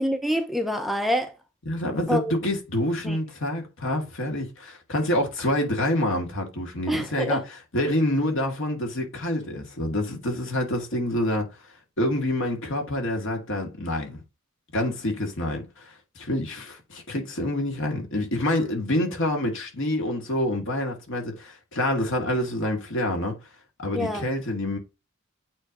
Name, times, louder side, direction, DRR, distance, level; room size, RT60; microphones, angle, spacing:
voice 1, 0.0-1.3 2.1-2.3 3.0-3.2 6.9-7.4 24.0-24.3, equal, ahead, 0.7 m, -26 dB
voice 2, 1.7-11.5 12.0-14.2 14.7-23.3 23.8-24.8, left 1 dB, 60° left, 2.3 m, -27 dB
8.6 x 3.2 x 3.7 m
head